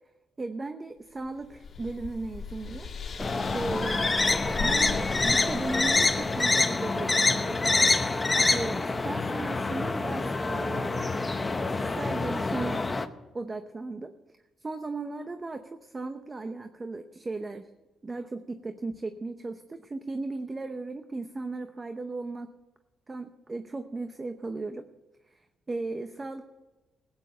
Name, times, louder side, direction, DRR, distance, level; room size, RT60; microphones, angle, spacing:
voice 1, 0.4-2.9 3.5-4.1 4.6-7.9 8.5-11.1 11.7-12.8 13.3-17.7 18.0-22.5 23.1-24.8 25.3-26.4, right 3 dB, 25° right, 8 dB, 0.8 m, -36 dB
sound 1, 1.2-6.5, left 5 dB, 45° left, 2.1 m, -39 dB
sound 2, 3.2-13.1, left 3 dB, 20° left, 0.9 m, -26 dB
15.5 x 8.9 x 6.7 m, 1.1 s
cardioid pair, 90°, 0 cm